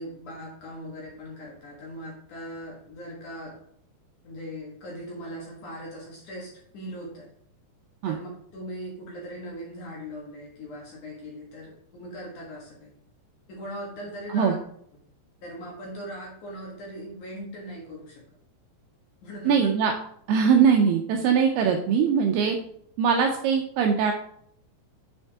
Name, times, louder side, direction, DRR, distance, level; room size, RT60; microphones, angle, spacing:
voice 1, 0.0-3.6 4.2-7.3 8.1-12.9 13.5-14.6 15.4-18.2 19.2-19.7, equal, 55° left, -3 dB, 2.5 m, -39 dB
voice 2, 19.5-19.9 20.3-22.6 23.0-24.1, right 6 dB, 80° right, 3 dB, 2.3 m, -21 dB
7.4 x 5.4 x 3.5 m, 0.68 s
omnidirectional pair, 5.1 m